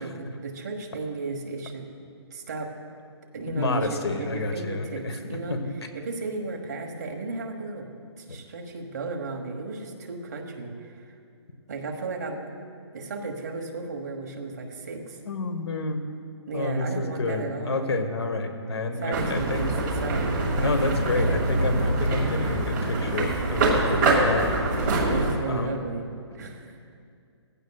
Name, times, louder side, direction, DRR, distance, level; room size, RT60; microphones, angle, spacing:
voice 1, 0.0-1.9 2.3-2.7 3.3-5.6 5.9-7.9 8.2-11.1 11.7-12.4 12.9-15.2 16.5-17.9 19.0-19.7 20.0-20.4 21.1-21.6 25.0-26.1 26.3-26.8, right 3 dB, 35° right, 2 dB, 1.3 m, -34 dB
voice 2, 3.5-5.7 15.2-16.0 16.5-19.7 20.6-25.0 25.5-25.8, left 2 dB, 65° left, 7 dB, 1.3 m, -29 dB
sound 1, 19.1-25.4, right 2 dB, 10° right, 1.3 m, -24 dB
18.5 x 15.5 x 2.3 m, 2.3 s
hypercardioid pair, 175°, 15 cm